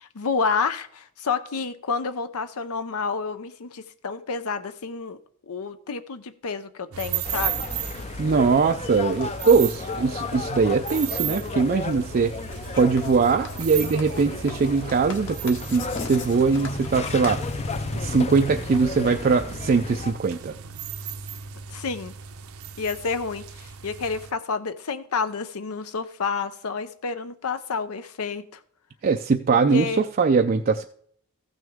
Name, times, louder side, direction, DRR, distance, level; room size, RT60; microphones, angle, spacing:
voice 1, 0.0-5.2 5.5-7.7 21.7-22.1 22.8-28.6 29.5-30.0, left 5 dB, 80° left, 11 dB, 0.6 m, -29 dB
sound 1, 6.9-24.3, right 8 dB, 75° right, 0.8 m, -36 dB
sound 2, 7.2-20.1, left 3 dB, 30° left, 0.5 m, -33 dB
voice 2, 8.2-12.3 12.8-17.4 17.9-20.5 29.0-30.8, right 5 dB, 40° right, 5 dB, 0.4 m, -21 dB
Writing, 12.4-18.3, left 4 dB, 55° left, 1.6 m, -41 dB
14.5 x 6.2 x 3.5 m, 0.62 s
head